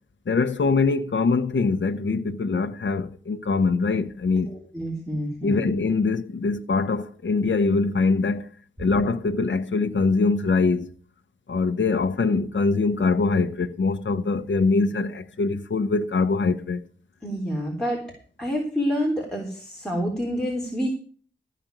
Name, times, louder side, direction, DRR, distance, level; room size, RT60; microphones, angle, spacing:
voice 1, 0.3-4.6 5.4-8.5 8.8-10.9 11.5-16.8, left 4 dB, 70° left, 0.9 m, -23 dB
voice 2, 4.5-5.7 17.2-18.1 18.4-20.9, equal, 5° left, 3.5 m, -28 dB
14.5 x 5.1 x 9.0 m
wide cardioid pair, 65°, 20 cm